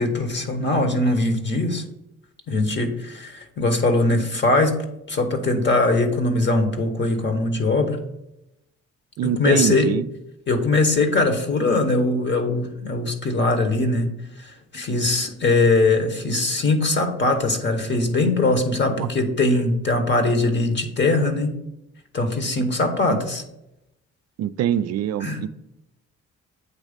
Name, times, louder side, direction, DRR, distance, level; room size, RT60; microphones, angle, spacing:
voice 1, 0.0-1.8 2.5-4.7 5.1-8.1 9.2-9.9 10.5-14.1 14.4-21.5 22.1-23.4 25.2-25.4, left 2 dB, 35° left, 8 dB, 1.1 m, -21 dB
voice 2, 9.2-10.0 18.8-19.1 23.1-23.2 24.4-25.5, right 10 dB, 60° right, 16 dB, 0.4 m, -24 dB
8.2 x 3.1 x 5.1 m, 0.85 s
cardioid pair, 90°, 30 cm